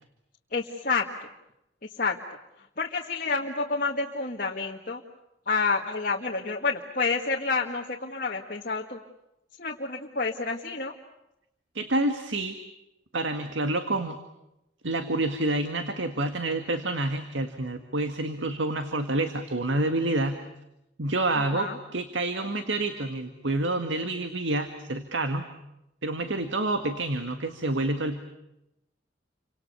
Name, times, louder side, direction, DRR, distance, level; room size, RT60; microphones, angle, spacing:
voice 1, 0.5-1.1 2.0-2.2 2.8-5.0 5.5-9.0 9.6-10.9 21.5-21.8, left 4 dB, 50° left, 0 dB, 1.8 m, -29 dB
voice 2, 11.7-12.6 13.1-14.2 14.8-20.4 21.0-25.5 26.0-28.2, right 2 dB, 90° right, 8 dB, 1.8 m, -28 dB
29.5 x 25.5 x 6.9 m, 0.88 s
head